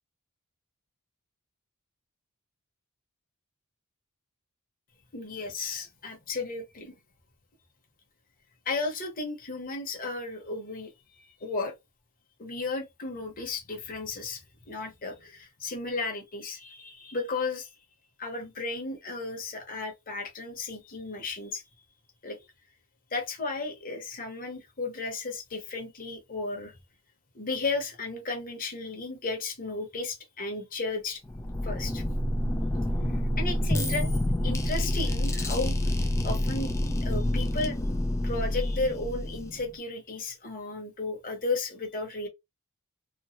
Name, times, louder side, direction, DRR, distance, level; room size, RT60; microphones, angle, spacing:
voice 1, 5.1-6.9 8.6-10.9 11.4-11.7 12.4-14.4 14.7-17.7 18.2-21.6 22.2-22.4 23.1-26.8 27.3-31.2 31.6-32.0 33.4-34.1 34.4-35.8 36.2-36.7 37.0-37.8 38.2-42.3, left 3 dB, 40° left, 1.0 m, -34 dB
flips and snaps, 31.2-39.7, left 1 dB, 15° left, 0.3 m, -28 dB
3.0 x 2.2 x 2.8 m
head